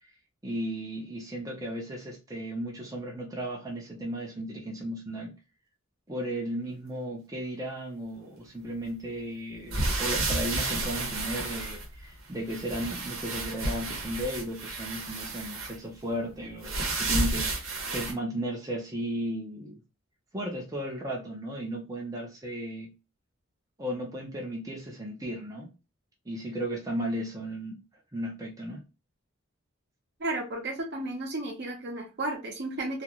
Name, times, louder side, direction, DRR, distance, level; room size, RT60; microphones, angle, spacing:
voice 1, 0.4-5.3 6.1-19.8 20.3-22.9 23.8-25.7 26.3-27.8 28.1-28.8, equal, 15° right, -2 dB, 0.5 m, -35 dB
sound 1, 9.7-12.2 12.5-15.8 16.6-18.1, right 2 dB, 85° right, 0.9 m, -31 dB
voice 2, 30.2-33.0, right 2 dB, 55° right, 2 dB, 0.8 m, -33 dB
2.4 x 2.1 x 2.9 m, 0.29 s
head